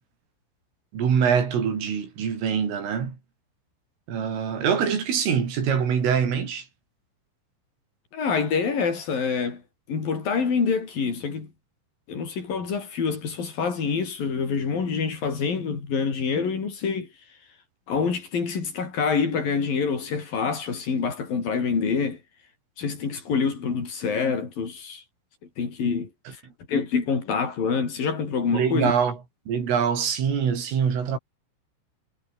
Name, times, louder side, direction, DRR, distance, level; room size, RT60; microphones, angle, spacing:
voice 1, 0.9-3.2 4.1-6.7 28.5-29.2 29.5-31.2, right 7 dB, 75° right, 7.6 m, -24 dB
voice 2, 8.1-9.6 9.9-11.5 12.1-17.1 17.9-22.2 22.8-25.0 25.6-26.1 26.7-28.9, left 5 dB, 45° left, 6.5 m, -26 dB
omnidirectional pair, 5.9 m